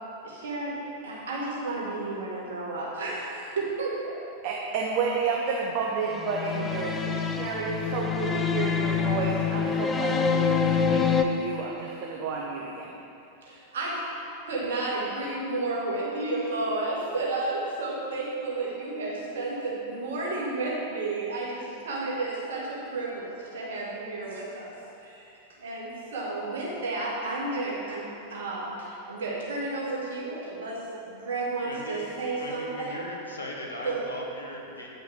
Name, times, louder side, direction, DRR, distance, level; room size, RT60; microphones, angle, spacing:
voice 1, 0.2-0.7 1.0-4.1 13.4-14.0 14.5-24.7 25.0-25.3 25.6-30.8 31.1-33.0 33.8-34.0, right 2 dB, 60° right, -5 dB, 1.9 m, -32 dB
voice 2, 4.4-12.9, right 5 dB, 45° right, -2 dB, 0.7 m, -31 dB
sound 1, 6.1-11.2, left 6 dB, 20° left, 0.5 m, -26 dB
voice 3, 31.6-32.1 32.4-34.9, left 1 dB, 75° left, -1 dB, 1.0 m, -38 dB
9.2 x 5.4 x 3.7 m, 2.7 s
figure-of-eight pair, 90°, 0 cm